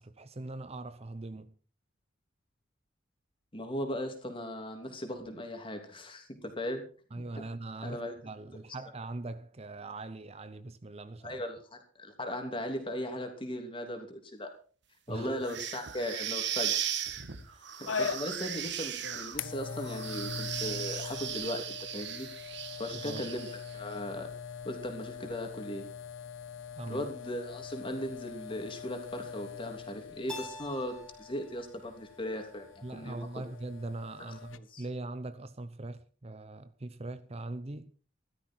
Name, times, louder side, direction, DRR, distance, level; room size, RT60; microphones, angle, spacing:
voice 1, 0.0-1.5 7.1-11.4 15.1-15.3 17.5-17.7 23.0-23.2 26.8-27.1 32.8-37.9, right 2 dB, 30° right, 0.7 m, -41 dB
voice 2, 3.5-6.8 7.2-7.3 7.8-8.1 11.2-11.6 12.0-14.5 15.1-17.0 17.8-22.3 22.8-24.3 24.6-25.9 26.9-32.6 32.9-33.2 34.5-34.8, left 1 dB, 25° left, 3.0 m, -38 dB
sound 1, 15.4-23.7, right 9 dB, 60° right, 1.5 m, -37 dB
sound 2, 17.9-34.6, left 6 dB, 85° left, 0.8 m, -42 dB
Keyboard (musical), 30.3-33.1, left 1 dB, 5° left, 2.9 m, -47 dB
15.0 x 13.0 x 4.6 m
head